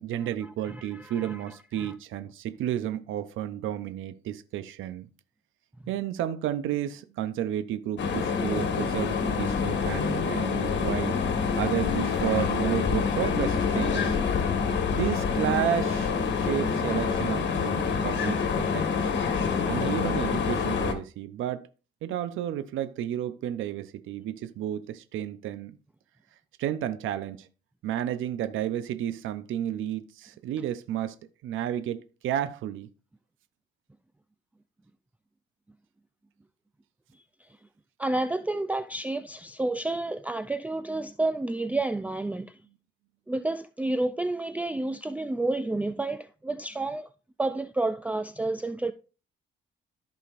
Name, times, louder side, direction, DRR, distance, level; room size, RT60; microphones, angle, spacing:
voice 1, 0.0-5.1 5.9-11.2 11.6-14.2 14.9-19.1 19.7-21.7 22.0-25.8 26.6-27.5 27.8-31.2 31.4-32.9, right 11 dB, 80° right, 0.7 m, -32 dB
voice 2, 0.9-1.4 1.8-1.9 38.0-42.6 43.3-47.1 47.4-48.9, right 2 dB, 5° right, 0.4 m, -30 dB
sound 1, 8.0-20.9, left 5 dB, 65° left, 1.6 m, -27 dB
14.0 x 5.1 x 2.5 m
cardioid pair, 90°, 20 cm